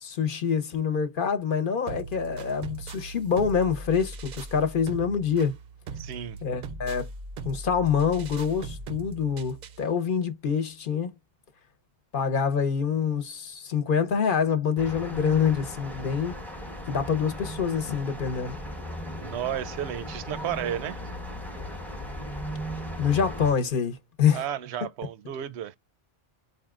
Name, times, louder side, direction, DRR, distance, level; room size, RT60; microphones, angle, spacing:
voice 1, 0.0-5.5 6.4-7.1 7.4-11.1 12.1-16.4 16.9-18.6 23.0-24.4, left 6 dB, 55° left, 0.9 m, -26 dB
sound 1, 1.9-9.9, right 3 dB, 55° right, 0.5 m, -40 dB
voice 2, 6.0-6.4 19.2-21.0 24.3-25.8, right 10 dB, 85° right, 0.8 m, -33 dB
sound 2, 14.8-23.5, equal, ahead, 0.7 m, -37 dB
4.8 x 2.7 x 2.3 m
omnidirectional pair, 1.1 m